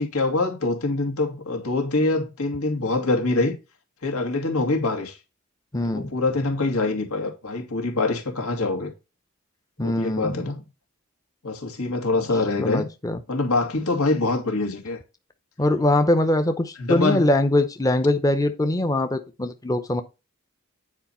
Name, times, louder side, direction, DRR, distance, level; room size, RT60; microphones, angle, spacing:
voice 1, 0.0-3.5 4.0-5.2 5.8-8.9 9.8-10.6 11.4-12.8 13.3-15.0 16.8-17.3, left 2 dB, 80° left, 2.3 m, -24 dB
voice 2, 5.7-6.1 9.8-10.4 12.6-13.2 15.6-20.0, left 1 dB, 15° left, 0.6 m, -22 dB
9.6 x 4.8 x 4.3 m
head